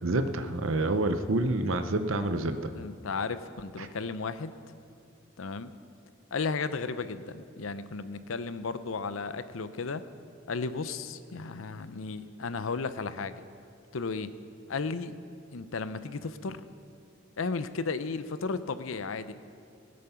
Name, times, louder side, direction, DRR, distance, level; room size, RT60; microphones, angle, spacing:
voice 1, 0.0-2.7 3.8-3.9, right 2 dB, 75° right, 9 dB, 0.8 m, -28 dB
voice 2, 2.8-4.5 5.4-5.7 6.3-10.0 10.5-13.4 13.9-14.3 14.7-15.1 15.5-16.6 17.4-19.3, left 4 dB, 80° left, 13 dB, 0.6 m, -34 dB
19.5 x 8.5 x 5.8 m, 2.6 s
head